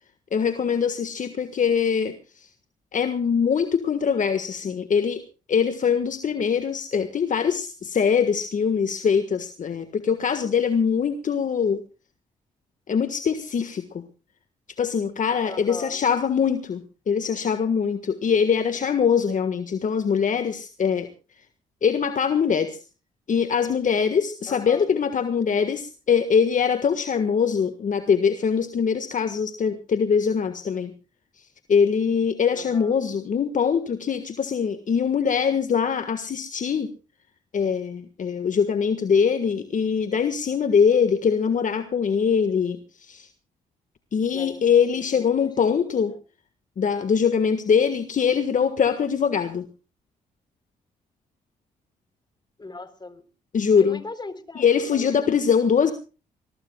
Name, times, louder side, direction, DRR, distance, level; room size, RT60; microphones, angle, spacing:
voice 1, 0.3-2.5 2.9-5.2 5.5-11.8 12.9-14.0 14.8-21.1 21.8-22.8 23.3-30.9 31.7-36.9 37.5-43.3 44.1-46.1 46.8-49.6 53.5-54.0 54.5-55.9, left 6 dB, 55° left, 9 dB, 1.6 m, -23 dB
voice 2, 15.5-16.0 24.5-24.9 32.5-33.0 44.3-46.0 52.6-53.2 53.8-55.3, left 3 dB, 25° left, 11 dB, 3.8 m, -40 dB
22.5 x 22.0 x 2.3 m, 0.35 s
supercardioid pair, 55°, 16 cm